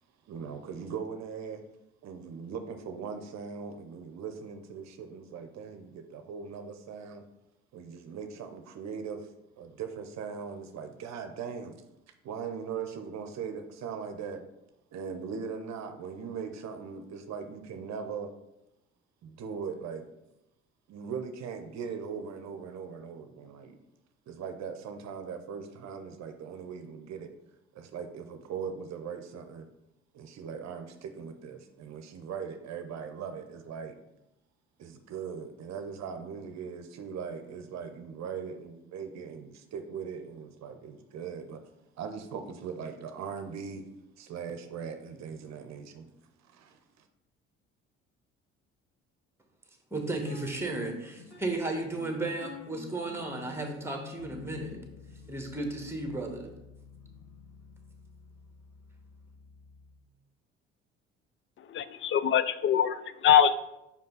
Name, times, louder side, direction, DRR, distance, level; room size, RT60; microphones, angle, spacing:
voice 1, 0.3-1.6 2.0-7.2 7.7-9.3 9.6-11.7 12.2-14.4 14.9-18.3 19.2-20.1 20.9-23.8 24.3-27.3 27.7-29.7 30.1-34.0 34.8-41.6 42.0-43.9 44.2-46.1 46.4-47.1, right 6 dB, 55° right, 7 dB, 0.8 m, -40 dB
voice 2, 49.9-54.8 55.3-56.5, right 2 dB, 5° right, 3 dB, 1.5 m, -34 dB
sound 1, 50.3-60.0, left 5 dB, 85° left, 2.4 m, -50 dB
voice 3, 61.7-63.5, left 9 dB, 40° left, 15 dB, 0.4 m, -23 dB
5.3 x 5.1 x 4.0 m, 0.88 s
hypercardioid pair, 60°, 33 cm